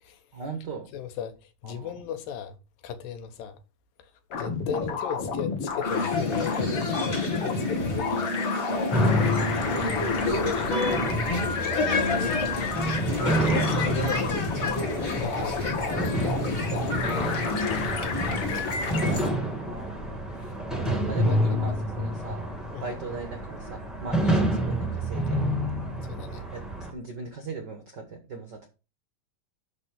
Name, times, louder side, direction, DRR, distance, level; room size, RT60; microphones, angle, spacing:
voice 1, 0.3-0.9 1.6-1.9 9.3-10.0 19.6-20.1 21.1-22.5 22.8-25.4 26.5-26.6 26.9-28.7, right 3 dB, 80° right, 0.9 m, -38 dB
voice 2, 0.9-2.6 2.8-3.6 4.0-4.1 4.4-8.5 10.3-11.8 12.1-12.8 13.1-14.4 15.2-19.2 20.4-20.5 21.3-21.4 22.2-22.3 22.7-22.9 26.1-26.4, left 7 dB, 75° left, 2.7 m, -38 dB
sound 1, 4.3-19.1, left 5 dB, 50° left, 2.0 m, -31 dB
sound 2, 5.8-19.3, left 3 dB, 25° left, 1.9 m, -30 dB
sound 3, 8.9-26.9, equal, ahead, 0.4 m, -29 dB
12.0 x 4.2 x 5.1 m
omnidirectional pair, 4.1 m